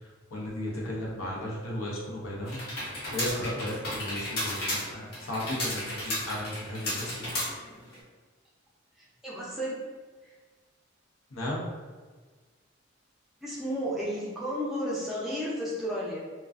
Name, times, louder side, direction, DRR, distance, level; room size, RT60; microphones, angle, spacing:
voice 1, 0.3-2.6 3.1-7.3 11.3-11.6, left 1 dB, 90° left, -4 dB, 0.7 m, -35 dB
sound 1, 2.4-8.0, left 1 dB, 50° left, 0.7 m, -34 dB
voice 2, 9.2-9.8 10.2-10.3 13.4-16.2, equal, ahead, -7 dB, 0.5 m, -32 dB
2.4 x 2.2 x 2.3 m, 1.4 s
head